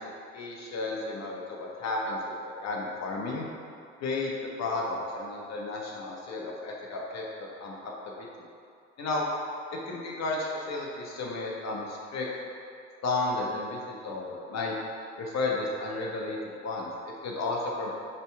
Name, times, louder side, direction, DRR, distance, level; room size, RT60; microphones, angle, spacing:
voice 1, 0.3-3.5 4.0-4.3 4.6-7.8 8.0-8.3 9.0-9.3 9.7-12.3 13.0-14.7 15.2-16.9 17.2-17.9, left 3 dB, 50° left, -2 dB, 1.3 m, -33 dB
5.6 x 3.6 x 4.7 m, 2.4 s
hypercardioid pair, 60°, 33 cm